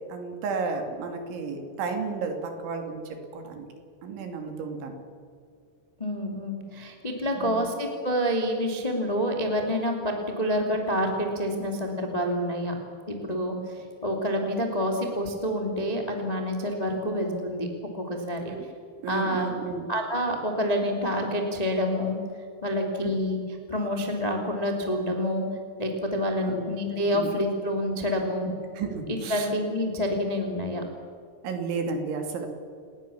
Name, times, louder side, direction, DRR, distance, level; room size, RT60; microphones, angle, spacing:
voice 1, 0.1-3.7 4.0-4.9 7.4-7.7 11.5-11.7 16.8-17.2 18.4-18.7 19.0-19.9 23.0-23.1 26.4-26.7 27.1-27.3 28.8-29.5 31.4-32.5, right 4 dB, 65° right, 4 dB, 4.8 m, -33 dB
voice 2, 6.0-12.7 13.1-17.7 17.9-18.4 19.1-19.5 19.9-22.2 22.6-23.4 23.7-25.4 25.8-28.5 29.1-30.8, equal, 15° left, 2 dB, 1.4 m, -28 dB
30.0 x 18.5 x 7.2 m, 2.3 s
omnidirectional pair, 5.9 m